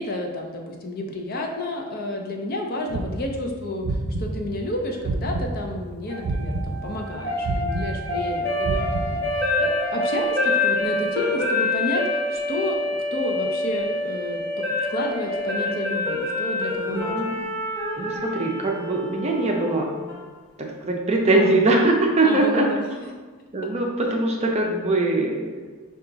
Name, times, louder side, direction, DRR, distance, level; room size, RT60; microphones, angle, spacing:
voice 1, 0.0-14.6 14.9-17.4 22.2-23.1 23.4-23.5, left 1 dB, 40° left, 2 dB, 0.5 m, -31 dB
sound 1, 2.9-5.9 6.2-9.6, right 2 dB, 85° right, 0.5 m, -29 dB
sound 2, 6.1-20.2, left 2 dB, 10° left, 0.9 m, -27 dB
voice 2, 16.9-17.3 18.0-19.9 20.6-22.7 23.5-25.5, right 2 dB, 30° right, 0 dB, 0.5 m, -22 dB
5.6 x 2.4 x 3.9 m, 1.4 s
head